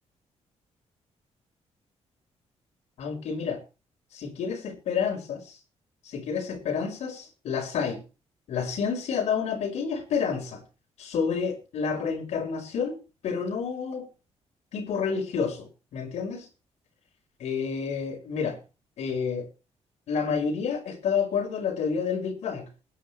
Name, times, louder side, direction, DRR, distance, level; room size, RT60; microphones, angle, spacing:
voice 1, 3.0-3.6 4.1-5.6 6.0-8.0 8.5-10.6 11.0-13.0 13.2-14.1 14.7-16.5 17.4-18.6 19.0-19.5 20.1-22.6, left 6 dB, 75° left, 5.1 m, -29 dB
21.0 x 9.8 x 3.3 m
wide cardioid pair, 170°, 11 cm